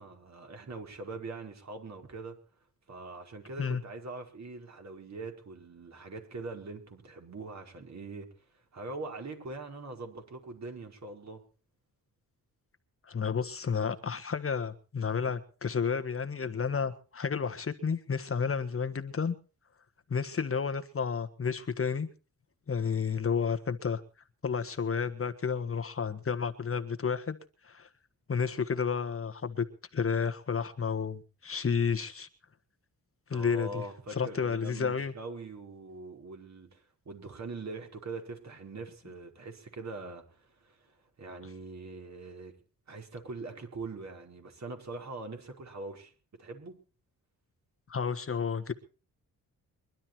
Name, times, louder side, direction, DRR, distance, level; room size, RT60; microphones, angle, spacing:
voice 1, 0.0-2.4 2.9-8.4 8.7-11.4 33.3-42.5 42.9-46.1 46.4-46.8, right 3 dB, 50° right, 4.9 m, -43 dB
voice 2, 13.1-19.3 20.1-22.1 22.7-24.0 24.4-27.4 27.6-27.9 28.3-29.6 29.9-32.3 33.3-33.8 34.1-35.1 47.9-48.7, left 6 dB, 40° left, 1.5 m, -31 dB
23.0 x 12.0 x 4.4 m
cardioid pair, 105°, 35 cm